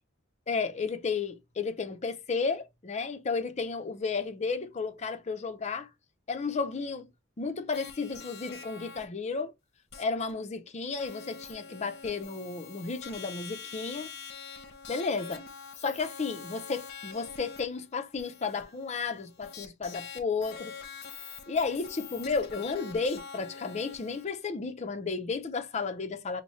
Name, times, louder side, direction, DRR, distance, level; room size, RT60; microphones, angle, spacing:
voice 1, 0.5-5.9 6.3-7.1 7.4-9.5 10.0-14.1 14.9-15.4 15.8-20.8 21.5-26.4, left 4 dB, 35° left, 0.5 m, -33 dB
sound 1, 7.7-9.0 9.9-10.0 10.3-10.4 11.0-24.2, left 6 dB, 55° left, 0.8 m, -45 dB
4.9 x 2.1 x 3.0 m
head